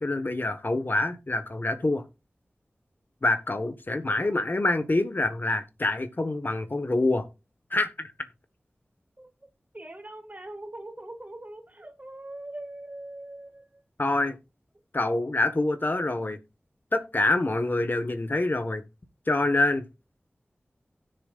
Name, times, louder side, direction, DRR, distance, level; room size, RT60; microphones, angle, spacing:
voice 1, 0.0-2.0 3.2-7.3 7.7-8.1 14.0-14.3 14.9-16.4 16.9-18.8 19.3-19.8, left 2 dB, 50° left, 1.5 m, -26 dB
voice 2, 9.7-13.8, right 1 dB, 35° right, 2.0 m, -42 dB
16.5 x 6.7 x 2.5 m
cardioid pair, 40°, 4 cm